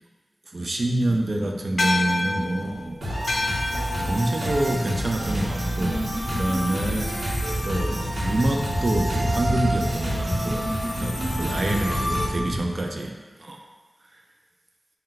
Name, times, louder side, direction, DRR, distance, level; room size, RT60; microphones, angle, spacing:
voice 1, 0.5-3.0 4.0-7.2 7.6-10.7 11.0-13.6, right 1 dB, 55° right, 1 dB, 0.4 m, -27 dB
sound 1, 1.8-6.5, left 2 dB, 70° left, 0.4 m, -30 dB
sound 2, 2.7-2.8 3.2-12.6, equal, 25° left, 0.9 m, -32 dB
sound 3, 3.0-12.3, equal, 80° right, 1.0 m, -28 dB
3.8 x 2.2 x 4.3 m, 1.4 s
wide cardioid pair, 65°, 0 cm